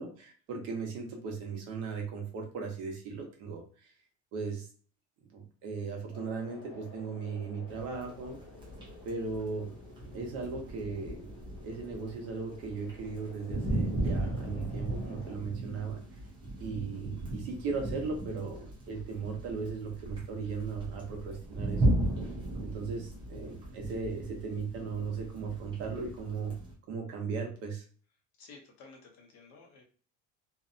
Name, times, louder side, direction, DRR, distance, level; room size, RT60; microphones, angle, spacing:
voice 1, 0.0-3.9 4.3-4.7 5.3-8.4 9.0-9.8 10.1-11.3 11.6-16.0 16.6-21.9 22.6-26.6 26.9-27.8, right 5 dB, 50° right, 1 dB, 0.9 m, -37 dB
sound 1, 6.1-15.4, left 3 dB, 75° left, 1.2 m, -52 dB
Gentle Rain Trickle with Thunder, 7.7-26.7, right 1 dB, 15° right, 0.6 m, -36 dB
voice 2, 28.4-29.8, left 4 dB, 55° left, 1 dB, 0.8 m, -53 dB
2.6 x 2.2 x 2.5 m, 0.42 s
cardioid pair, 165°, 30 cm